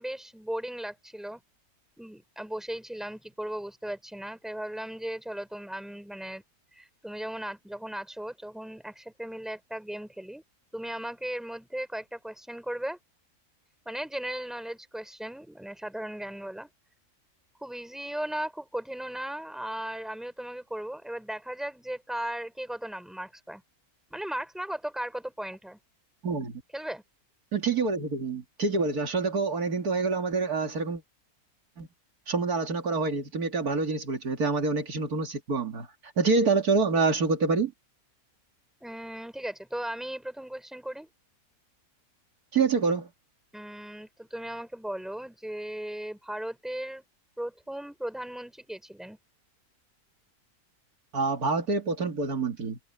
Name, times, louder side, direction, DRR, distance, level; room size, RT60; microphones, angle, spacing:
voice 1, 0.0-1.4 2.0-6.4 6.7-10.4 10.7-13.0 13.9-16.7 17.6-23.6 24.1-25.8 26.7-27.0 38.8-41.1 43.5-47.0 47.4-49.2, right 1 dB, ahead, 3.7 m, -37 dB
voice 2, 26.2-26.6 27.5-31.0 31.8-31.9 32.3-35.9 36.2-37.7 42.5-43.1 51.1-52.8, right 4 dB, 85° right, 2.8 m, -27 dB
omnidirectional pair, 1.6 m